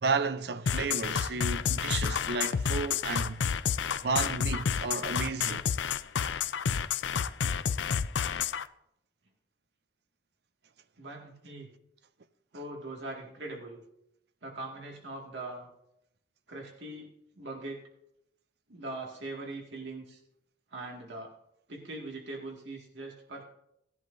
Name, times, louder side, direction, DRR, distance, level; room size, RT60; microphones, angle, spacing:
voice 1, 0.0-3.5 4.0-5.6, right 4 dB, 65° right, 0.6 m, -32 dB
sound 1, 0.7-8.6, left 7 dB, 85° left, 0.4 m, -29 dB
voice 2, 11.0-11.7 12.5-13.8 14.4-15.7 16.5-17.8 18.7-20.2 20.7-21.3 21.7-23.4, right 2 dB, 80° right, 2.1 m, -41 dB
17.5 x 11.0 x 2.7 m
head